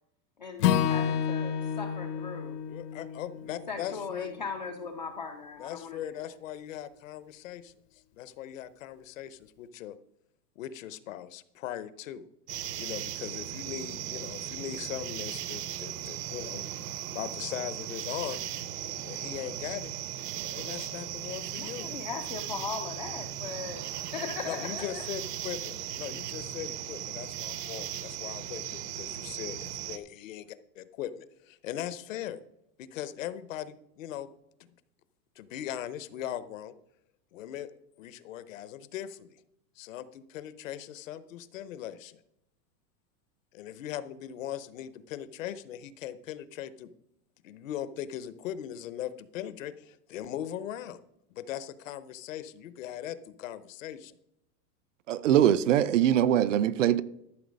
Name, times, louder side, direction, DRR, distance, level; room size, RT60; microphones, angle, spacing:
voice 1, 0.4-2.6 3.7-6.3 21.6-25.0, left 5 dB, 30° left, 0.4 m, -39 dB
Acoustic guitar / Strum, 0.6-4.9, left 9 dB, 70° left, 1.1 m, -30 dB
voice 2, 2.7-4.3 5.6-7.7 8.2-9.9 10.6-12.2 12.8-16.6 17.1-18.4 19.0-19.9 20.5-21.9 24.4-32.4 32.8-34.3 34.6-34.7 35.4-36.7 37.3-37.7 38.0-39.4 39.8-42.2 43.5-46.9 47.4-51.0 51.3-54.2, left 11 dB, 55° left, 0.8 m, -39 dB
sound 1, 12.5-30.0, right 11 dB, 70° right, 1.0 m, -37 dB
voice 3, 55.1-57.0, right 11 dB, 55° right, 0.5 m, -22 dB
13.0 x 6.7 x 5.2 m
supercardioid pair, 180°, 48 cm